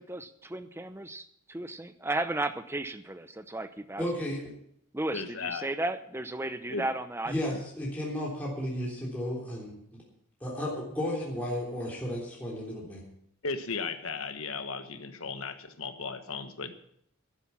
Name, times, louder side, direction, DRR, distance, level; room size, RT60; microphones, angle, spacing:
voice 1, 0.0-4.0 4.9-7.6, right 2 dB, 10° right, 11 dB, 0.6 m, -34 dB
voice 2, 4.0-4.4 7.2-10.0 10.4-13.0, left 1 dB, 5° left, -5 dB, 3.5 m, -33 dB
voice 3, 5.1-5.7 6.7-6.8 13.4-16.9, left 4 dB, 70° left, 8 dB, 1.3 m, -36 dB
11.5 x 10.5 x 7.2 m, 0.68 s
head